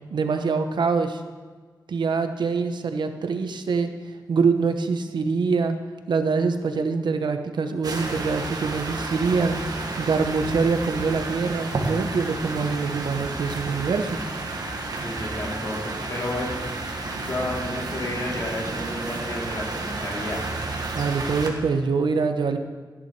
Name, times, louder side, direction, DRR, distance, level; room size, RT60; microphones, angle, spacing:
voice 1, 0.1-1.2 1.9-3.9 4.3-5.8 6.1-9.6 10.0-14.2 20.9-22.6, right 4 dB, 80° right, 7 dB, 0.9 m, -24 dB
sound 1, 7.8-21.5, right 3 dB, 60° right, 1.6 m, -31 dB
voice 2, 15.0-16.6 16.9-20.4, left 1 dB, 45° left, -3 dB, 3.0 m, -32 dB
14.5 x 10.0 x 4.7 m, 1.5 s
wide cardioid pair, 140°, 8 cm